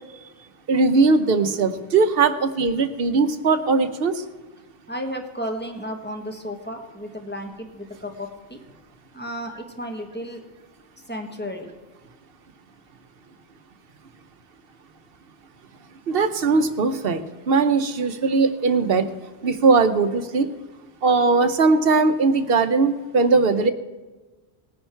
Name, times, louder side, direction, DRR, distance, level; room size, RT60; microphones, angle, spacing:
voice 1, 0.7-4.2 16.1-19.1 19.4-20.5 21.0-23.7, right 4 dB, 65° right, 10 dB, 1.0 m, -19 dB
voice 2, 4.9-8.6 9.1-10.4 11.1-11.7, equal, 10° left, 3 dB, 1.4 m, -33 dB
19.0 x 10.0 x 4.5 m, 1.2 s
omnidirectional pair, 1.1 m